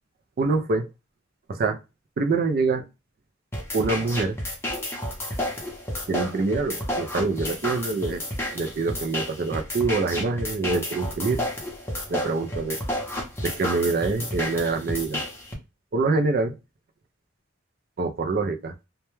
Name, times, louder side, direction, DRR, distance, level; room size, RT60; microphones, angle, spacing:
voice 1, 0.4-0.9 1.5-1.8 2.2-2.8 3.7-4.4 6.1-8.2 8.5-11.4 12.1-12.8 13.4-15.2 15.9-16.6 18.0-18.7, right 3 dB, 50° right, 6 dB, 0.4 m, -25 dB
sound 1, 3.5-15.5, left 1 dB, 10° left, 0.6 m, -31 dB
2.2 x 2.1 x 3.0 m, 0.26 s
head